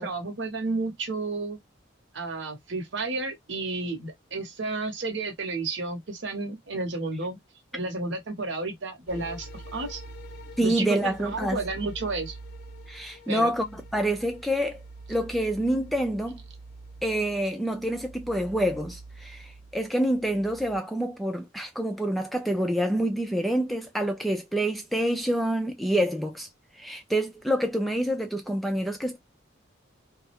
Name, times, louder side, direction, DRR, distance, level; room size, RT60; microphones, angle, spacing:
voice 1, 0.0-1.6 2.1-7.4 7.7-10.0 10.6-12.4 13.3-13.5, right 3 dB, 65° right, 0.9 m, -32 dB
sound 1, 9.1-20.8, right 2 dB, 55° left, 0.5 m, -45 dB
voice 2, 10.6-11.6 12.9-14.8 15.1-16.4 17.0-26.5 26.8-29.2, right 1 dB, ahead, 0.3 m, -27 dB
2.3 x 2.0 x 2.9 m
head